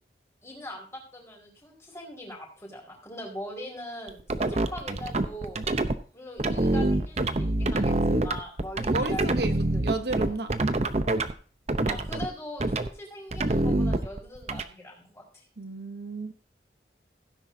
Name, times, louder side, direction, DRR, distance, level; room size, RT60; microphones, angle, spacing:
voice 1, 0.4-5.7 6.1-9.8 11.9-15.4, left 1 dB, 15° left, -2 dB, 4.6 m, -41 dB
sound 1, 4.1-5.9 6.4-11.3 11.7-12.3 12.6-12.9 13.3-14.6, right 2 dB, 40° right, 0.7 m, -26 dB
voice 2, 8.9-10.6 15.6-16.3, right 3 dB, 65° right, 8 dB, 1.0 m, -32 dB
16.0 x 10.0 x 2.7 m, 0.40 s
head